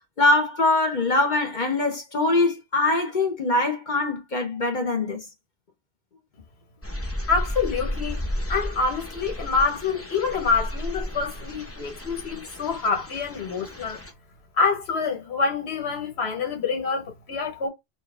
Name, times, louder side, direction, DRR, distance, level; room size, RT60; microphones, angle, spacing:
voice 1, 0.2-5.2, left 2 dB, 50° left, 1.1 m, -23 dB
sound 1, 6.8-14.1, left 1 dB, 15° left, 0.7 m, -33 dB
voice 2, 7.3-8.2 8.5-14.0 14.6-17.7, left 4 dB, 80° left, 1.6 m, -26 dB
4.3 x 2.6 x 3.5 m
omnidirectional pair, 1.1 m